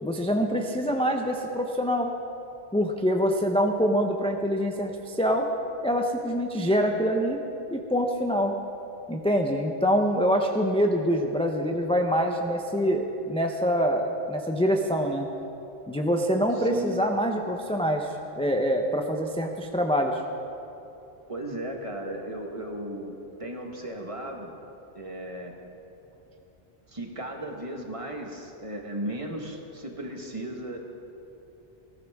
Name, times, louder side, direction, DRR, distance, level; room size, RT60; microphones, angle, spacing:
voice 1, 0.0-2.1 2.7-5.5 5.8-7.4 7.7-8.5 9.1-15.3 15.9-20.2, equal, 5° left, 2 dB, 0.5 m, -25 dB
voice 2, 16.6-16.9 21.3-24.5 24.9-25.5 26.9-30.8, right 1 dB, 35° right, 2 dB, 1.4 m, -36 dB
19.5 x 14.0 x 3.5 m, 2.9 s
omnidirectional pair, 1.0 m